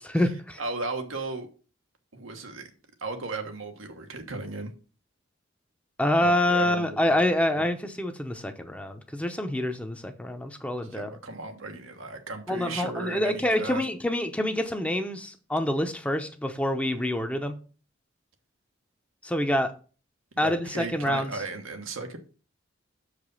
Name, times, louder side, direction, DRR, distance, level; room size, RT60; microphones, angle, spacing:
voice 1, 0.0-0.6 6.0-11.1 12.5-17.6 19.2-19.7 20.4-21.3, left 1 dB, 5° left, 0.7 m, -26 dB
voice 2, 0.6-1.5 2.1-2.7 3.0-4.7 6.2-7.6 10.9-13.8 20.4-22.2, right 3 dB, 90° right, 1.4 m, -36 dB
6.7 x 4.9 x 5.4 m
head